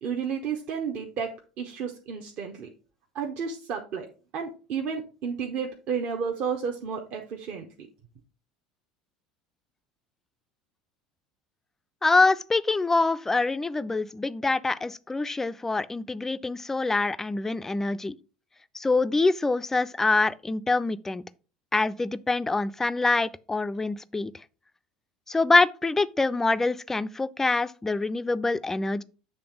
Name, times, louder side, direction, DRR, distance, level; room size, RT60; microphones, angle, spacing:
voice 1, 0.0-2.7 3.1-4.1 4.3-7.9, right 6 dB, 50° right, 0.8 m, -32 dB
voice 2, 12.0-18.1 18.7-21.2 21.7-24.3 25.3-29.0, left 3 dB, 10° left, 0.3 m, -25 dB
7.7 x 3.5 x 4.6 m
figure-of-eight pair, 70°, 3 cm